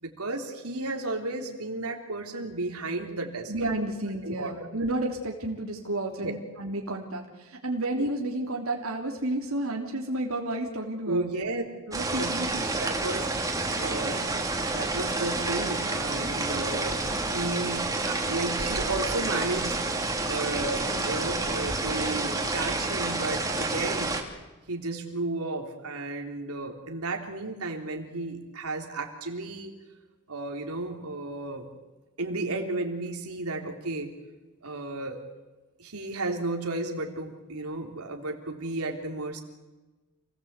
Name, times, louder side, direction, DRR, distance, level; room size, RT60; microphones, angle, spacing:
voice 1, 0.0-3.5 4.2-4.7 6.2-6.3 11.1-11.6 12.2-12.4 12.8-13.4 13.8-24.1 24.7-29.7 30.3-31.7 32.2-34.2 34.6-35.2 35.8-39.4, right 2 dB, 85° right, 2 dB, 3.4 m, -33 dB
voice 2, 3.5-11.3 11.9-12.7, right 1 dB, 70° right, 1 dB, 3.1 m, -31 dB
sound 1, 11.9-24.2, right 2 dB, 15° right, 2.8 m, -29 dB
28.5 x 18.5 x 8.2 m, 1.2 s
head